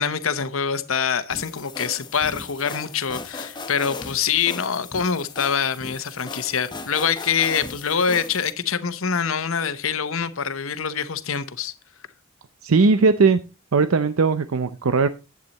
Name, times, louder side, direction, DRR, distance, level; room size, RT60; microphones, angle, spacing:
voice 1, 0.0-11.7, left 7 dB, 75° left, 0.9 m, -25 dB
sound 1, 1.3-8.5, left 3 dB, 20° left, 0.9 m, -37 dB
voice 2, 12.6-13.4 13.7-15.1, right 4 dB, 85° right, 0.6 m, -18 dB
11.0 x 8.6 x 4.1 m
head